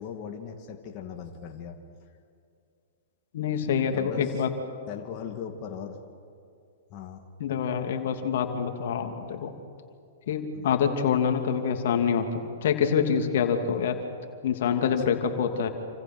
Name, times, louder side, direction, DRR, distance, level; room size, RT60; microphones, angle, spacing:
voice 1, 0.0-1.8 3.9-4.4 4.9-6.0 6.9-7.2 10.5-10.7 13.6-13.9, left 8 dB, 40° left, 2 dB, 2.4 m, -39 dB
voice 2, 3.3-4.5 7.4-9.5 10.3-14.0 14.4-15.7, left 7 dB, 65° left, 5 dB, 2.8 m, -26 dB
29.0 x 27.0 x 6.2 m, 2.4 s
hypercardioid pair, 120°, 0 cm